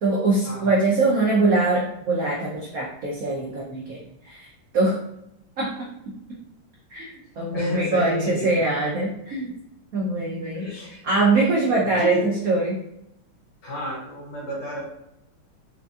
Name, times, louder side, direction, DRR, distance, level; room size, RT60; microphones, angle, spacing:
voice 1, 0.0-4.0 4.2-4.5 4.7-5.0 5.6-5.9 6.9-7.1 7.4-9.5 9.9-10.7 11.0-12.8, right 3 dB, 85° right, -4 dB, 0.7 m, -22 dB
voice 2, 7.5-8.6 10.5-11.0 11.7-12.2 13.6-14.8, left 2 dB, 85° left, -6 dB, 2.3 m, -31 dB
4.8 x 2.5 x 2.4 m, 0.82 s
omnidirectional pair, 2.3 m